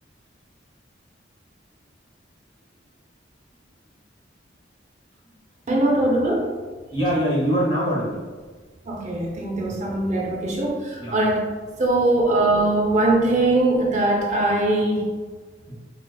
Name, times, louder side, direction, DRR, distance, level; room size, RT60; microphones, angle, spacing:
voice 1, 5.7-6.5 8.9-11.5 11.8-15.1, right 2 dB, 40° right, -1 dB, 0.4 m, -21 dB
voice 2, 6.9-8.3 9.7-9.8 11.0-11.2 15.7-15.8, equal, 25° left, -5 dB, 0.9 m, -24 dB
4.6 x 2.2 x 2.2 m, 1.4 s
head